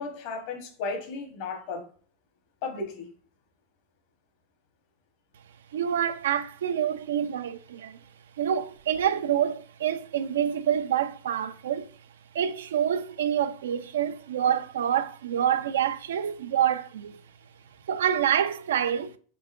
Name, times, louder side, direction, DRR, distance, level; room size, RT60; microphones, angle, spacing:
voice 1, 0.0-1.9 2.6-3.1, left 4 dB, 60° left, 0.9 m, -34 dB
voice 2, 5.7-8.0 8.4-11.9 12.3-17.2 17.9-19.1, right 9 dB, 85° right, 0.3 m, -27 dB
3.7 x 3.6 x 2.4 m
hypercardioid pair, 115°, 0 cm